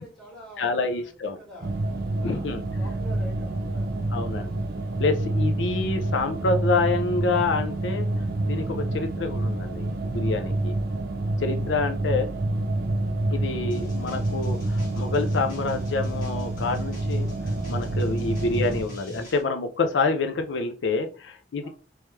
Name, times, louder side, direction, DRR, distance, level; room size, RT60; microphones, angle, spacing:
voice 1, 0.0-1.8 2.1-4.1 10.6-10.8 21.6-21.7, equal, 5° left, -7 dB, 1.8 m, -46 dB
voice 2, 0.6-1.4 2.2-2.6 4.1-4.6 5.0-8.1 8.5-10.7 11.4-12.3 13.3-21.7, left 3 dB, 85° left, 7 dB, 0.5 m, -27 dB
sound 1, 1.6-18.8, right 2 dB, 55° right, 0.6 m, -28 dB
sound 2, 13.7-19.4, right 1 dB, 50° left, 1.6 m, -44 dB
3.3 x 3.0 x 3.2 m, 0.35 s
head